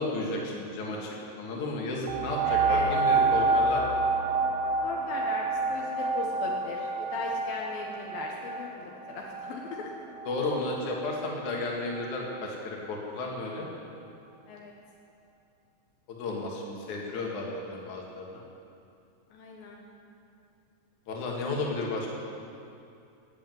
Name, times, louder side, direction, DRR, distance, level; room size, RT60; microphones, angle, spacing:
voice 1, 0.0-3.8 10.2-13.7 16.1-18.4 21.1-22.1, left 2 dB, 60° left, -1 dB, 3.2 m, -33 dB
sound 1, 2.1-11.3 12.0-12.1, right 3 dB, 80° right, 1.9 m, -28 dB
voice 2, 2.4-2.9 4.8-9.9 14.5-14.7 19.3-19.8, left 4 dB, 80° left, -1 dB, 3.0 m, -38 dB
13.5 x 8.5 x 9.3 m, 2.6 s
omnidirectional pair, 4.2 m